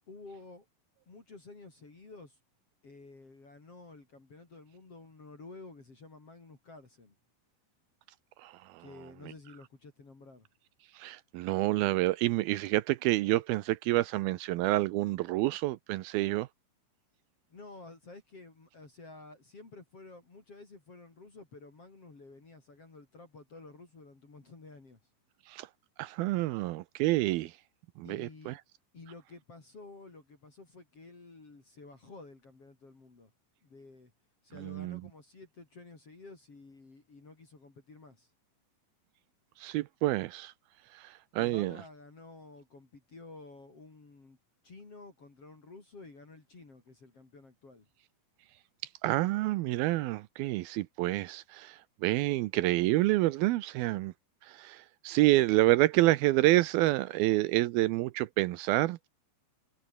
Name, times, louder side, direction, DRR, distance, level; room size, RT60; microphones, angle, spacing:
voice 1, 0.1-0.6 1.1-2.4 2.8-7.2 8.8-10.5 17.5-25.0 28.0-28.6 28.9-33.3 33.6-34.1 34.4-38.3 41.4-44.4 44.6-47.9, left 3 dB, 35° left, 5.3 m, -51 dB
voice 2, 8.4-8.9 10.9-16.5 25.5-25.7 26.0-27.6 28.0-28.6 34.6-35.0 39.6-40.5 40.9-41.8 49.0-54.1 54.4-59.1, right 18 dB, 85° right, 2.2 m, -28 dB
omnidirectional pair, 5.2 m